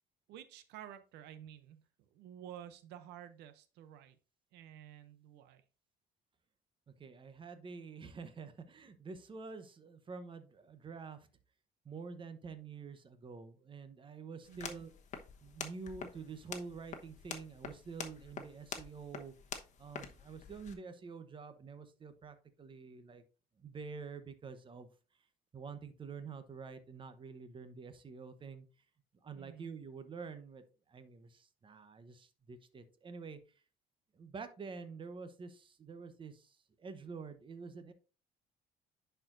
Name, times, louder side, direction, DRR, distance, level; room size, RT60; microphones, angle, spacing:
voice 1, 0.3-1.8 2.1-4.2 4.5-5.6 14.5-14.8 29.3-29.7, right 10 dB, 85° right, 12 dB, 0.6 m, -51 dB
voice 2, 6.9-11.3 11.8-14.9 15.4-19.3 19.8-23.2 23.6-24.9 25.5-28.7 29.2-30.6 30.9-33.4 34.1-37.9, right 5 dB, 30° right, 10 dB, 0.9 m, -48 dB
sound 1, 14.4-20.7, left 6 dB, 45° left, 1.0 m, -47 dB
10.5 x 4.6 x 2.5 m, 0.34 s
cardioid pair, 110°, 17 cm